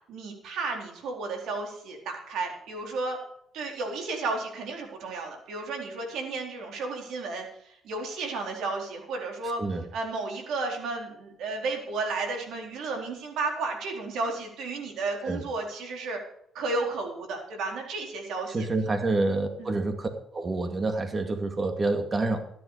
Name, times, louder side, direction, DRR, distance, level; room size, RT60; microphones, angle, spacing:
voice 1, 0.1-3.2 3.5-9.6 9.9-16.2 16.5-18.7 19.6-19.7, right 3 dB, 80° right, 2 dB, 4.0 m, -33 dB
voice 2, 18.5-22.4, right 2 dB, 30° right, 5 dB, 2.5 m, -28 dB
13.5 x 11.0 x 5.0 m, 0.71 s
cardioid pair, 90°, 0 cm